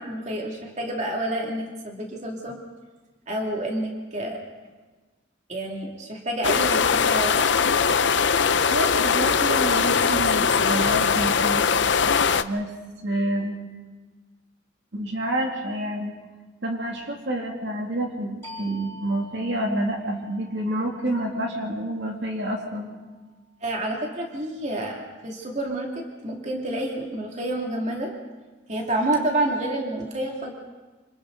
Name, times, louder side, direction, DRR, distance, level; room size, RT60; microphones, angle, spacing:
voice 1, 0.0-2.6 3.3-4.4 5.5-7.4 23.6-28.1 28.7-30.5, right 1 dB, 35° right, 0 dB, 2.6 m, -29 dB
sound 1, 6.4-12.4, left 6 dB, 65° left, 0.7 m, -21 dB
voice 2, 8.7-11.7 12.3-12.7 13.0-13.6 14.9-16.1 16.6-22.9, right 1 dB, 60° right, 0 dB, 2.8 m, -28 dB
sound 2, 18.4-23.7, equal, 15° left, 6.1 m, -47 dB
27.5 x 26.5 x 4.0 m, 1.3 s
head